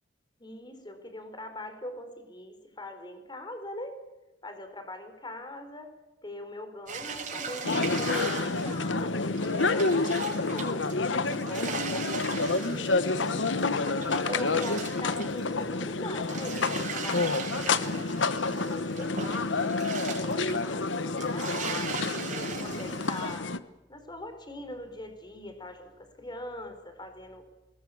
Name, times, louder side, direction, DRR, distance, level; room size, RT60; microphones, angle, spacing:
voice 1, 0.4-4.0 4.4-5.9 6.2-13.1 13.6-18.1 18.6-21.9 22.3-23.5 23.9-27.4, left 1 dB, 25° left, 7 dB, 4.2 m, -42 dB
sound 1, 6.9-15.9 16.2-23.4, right 5 dB, 45° right, 5.4 m, -39 dB
sound 2, 7.6-23.6, left 3 dB, 80° left, 1.2 m, -29 dB
20.5 x 20.5 x 8.6 m, 1.0 s
head